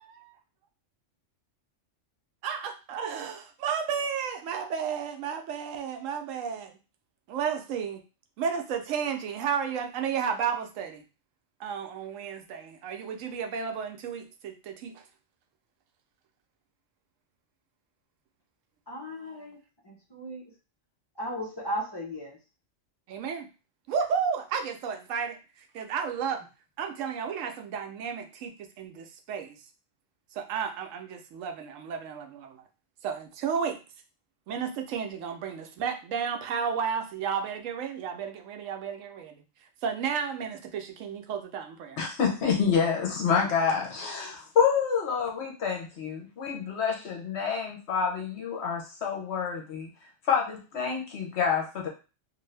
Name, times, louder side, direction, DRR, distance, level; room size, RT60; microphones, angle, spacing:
voice 1, 2.4-6.7 7.3-8.0 8.4-11.0 11.6-15.0 23.1-23.5 23.9-26.4 26.8-29.6 30.3-32.6 33.0-33.8 34.5-39.4 39.8-42.0, right 7 dB, 85° right, 6 dB, 1.0 m, -32 dB
voice 2, 18.9-19.6 19.8-20.4 21.2-22.4, equal, 25° left, -4 dB, 0.6 m, -36 dB
voice 3, 42.0-49.9 50.2-51.9, left 6 dB, 65° left, 1 dB, 1.0 m, -27 dB
2.6 x 2.6 x 3.2 m, 0.32 s
omnidirectional pair, 1.3 m